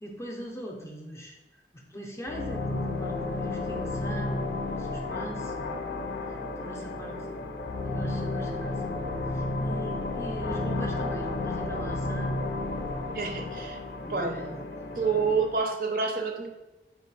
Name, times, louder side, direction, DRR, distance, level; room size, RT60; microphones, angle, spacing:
voice 1, 0.0-1.4 1.7-7.2 7.9-9.0 9.2-12.9 14.0-14.6 15.1-15.3, right 1 dB, 15° left, 0 dB, 0.5 m, -40 dB
sound 1, 2.3-15.6, left 2 dB, 75° left, 0.5 m, -32 dB
voice 2, 13.1-13.8 14.1-14.3 15.0-16.5, right 5 dB, 55° right, 3 dB, 0.6 m, -28 dB
3.3 x 3.2 x 4.6 m, 1.1 s
head